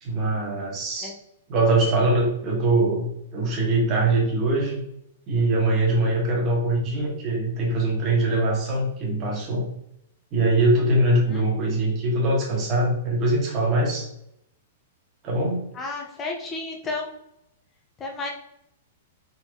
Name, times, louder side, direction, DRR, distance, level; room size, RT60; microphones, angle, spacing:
voice 1, 0.0-1.1 1.5-3.1 3.3-4.8 5.3-9.7 10.3-14.1 15.2-15.7, right 2 dB, 30° right, -2 dB, 1.5 m, -22 dB
voice 2, 11.1-11.4 15.7-17.1 18.0-18.3, left 3 dB, 20° left, 0 dB, 0.9 m, -32 dB
3.9 x 3.8 x 3.1 m, 0.79 s
hypercardioid pair, 150°, 0 cm